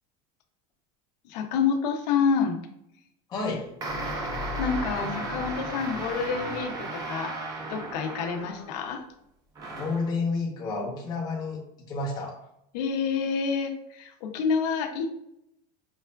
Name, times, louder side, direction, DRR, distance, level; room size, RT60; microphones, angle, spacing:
voice 1, 1.2-2.7 4.6-9.0 12.7-15.1, left 6 dB, 85° left, 5 dB, 0.6 m, -28 dB
voice 2, 3.3-3.7 9.8-11.6 11.9-12.4, left 3 dB, 20° left, -3 dB, 0.7 m, -30 dB
sound 1, 3.8-8.9 9.6-10.1, right 1 dB, 20° right, 0.4 m, -34 dB
5.3 x 2.3 x 2.2 m, 0.79 s
supercardioid pair, 170°, 21 cm